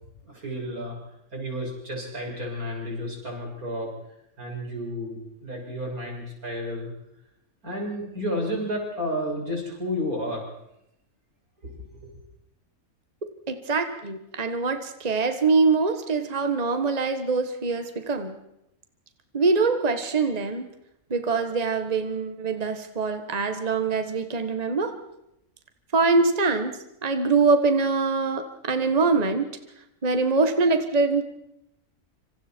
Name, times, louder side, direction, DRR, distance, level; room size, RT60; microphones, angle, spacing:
voice 1, 0.3-1.0 1.3-3.9 4.4-6.9 7.6-10.5 11.6-12.1, equal, 90° right, -1 dB, 7.4 m, -31 dB
voice 2, 13.5-18.4 19.3-20.7 21.1-25.0 25.9-29.5 30.0-31.2, right 4 dB, 30° right, 7 dB, 1.6 m, -24 dB
26.5 x 26.0 x 4.6 m, 0.83 s
omnidirectional pair, 1.5 m